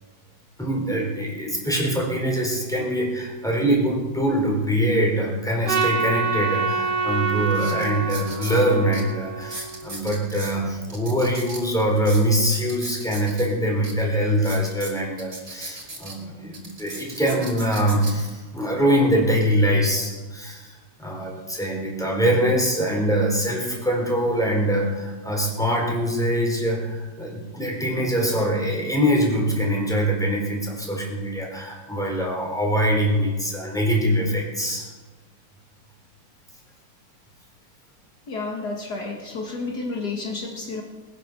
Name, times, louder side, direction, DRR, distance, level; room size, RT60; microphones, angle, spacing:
voice 1, 0.6-34.9, equal, ahead, -1 dB, 4.1 m, -23 dB
Trumpet, 5.7-10.0, right 5 dB, 70° right, 1.8 m, -26 dB
sound 1, 6.8-6.9 7.5-8.6 8.9-9.0 9.4-10.5 10.9-13.5 13.8-13.9 14.3-16.1 16.5-18.3 18.9-19.2, right 2 dB, 40° right, 4.2 m, -37 dB
voice 2, 38.3-40.8, left 3 dB, 60° left, 1 dB, 2.2 m, -31 dB
21.0 x 9.7 x 6.7 m, 1.3 s
omnidirectional pair, 2.0 m